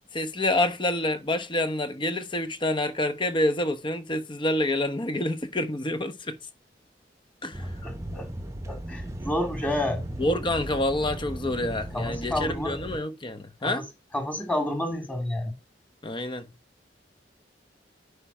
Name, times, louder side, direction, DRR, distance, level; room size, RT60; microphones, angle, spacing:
voice 1, 0.1-6.4 7.4-7.7 10.2-13.8 16.0-16.4, left 1 dB, 30° left, 1.0 m, -27 dB
sound 1, 7.5-13.0, right 1 dB, 15° right, 0.9 m, -36 dB
voice 2, 7.8-8.3 8.7-10.0 11.9-12.8 13.6-13.8 14.1-15.6, left 1 dB, 10° left, 2.4 m, -30 dB
9.4 x 5.0 x 5.6 m
head